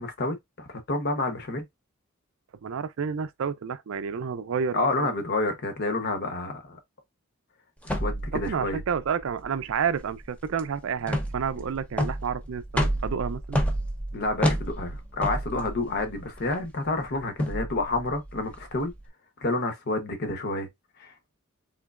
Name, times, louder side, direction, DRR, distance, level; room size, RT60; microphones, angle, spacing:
voice 1, 0.0-1.7 4.7-6.8 7.8-8.8 14.1-18.9 19.4-20.7 21.0-21.1, left 2 dB, 50° left, 0.9 m, -29 dB
voice 2, 2.6-5.1 8.3-13.6, right 6 dB, 65° right, 0.4 m, -30 dB
sound 1, 7.8-19.0, equal, 5° left, 0.7 m, -31 dB
3.8 x 3.1 x 2.3 m
head